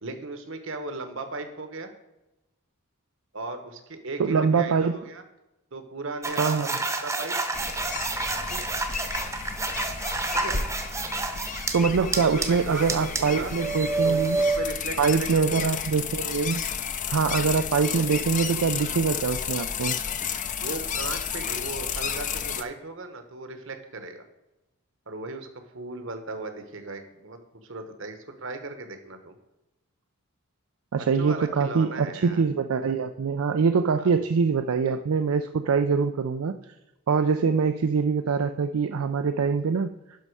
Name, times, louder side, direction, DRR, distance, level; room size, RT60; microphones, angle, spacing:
voice 1, 0.0-1.9 3.3-5.2 5.7-6.8 7.0-7.4 8.5-8.6 10.3-10.7 12.0-13.5 14.0-15.8 17.1-17.4 20.6-24.3 25.1-25.5 25.7-29.4 31.1-32.4 34.0-34.1, right 3 dB, 65° right, 7 dB, 1.2 m, -37 dB
voice 2, 4.2-4.9 6.4-6.8 11.7-14.4 15.0-16.6 17.1-20.0 30.9-36.6 37.1-39.9, right 5 dB, 80° right, 8 dB, 0.4 m, -24 dB
sound 1, 6.2-11.7 12.1-14.6, right 3 dB, 15° right, 0.8 m, -29 dB
sound 2, 7.5-22.6, left 7 dB, 35° left, 0.5 m, -32 dB
11.5 x 5.5 x 4.7 m, 0.97 s
head